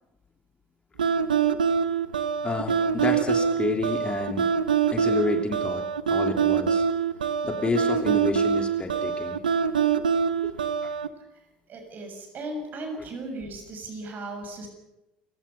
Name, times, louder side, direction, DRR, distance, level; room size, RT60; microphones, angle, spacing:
sound 1, 1.0-11.1, right 7 dB, 80° right, 0.9 m, -24 dB
voice 1, 2.4-4.5 4.9-6.8 7.4-9.4 10.4-10.5 10.8-10.9, left 4 dB, 25° left, 4 dB, 2.9 m, -30 dB
voice 2, 11.3-14.7, right 2 dB, 45° right, 5 dB, 7.0 m, -37 dB
29.5 x 17.0 x 5.9 m, 0.95 s
figure-of-eight pair, 65°, 4 cm